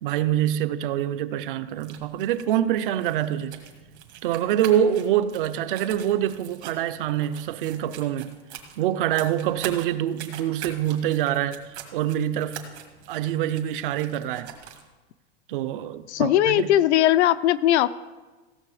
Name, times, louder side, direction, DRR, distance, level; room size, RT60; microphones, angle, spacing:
voice 1, 0.0-3.6 4.2-8.3 8.8-12.6 13.1-14.5 15.5-16.7, right 11 dB, 55° right, 0.5 m, -25 dB
sound 1, 1.7-14.9, right 9 dB, 80° right, 1.8 m, -43 dB
voice 2, 16.1-18.0, left 12 dB, 80° left, 0.6 m, -19 dB
16.0 x 6.8 x 4.9 m
supercardioid pair, 175°, 33 cm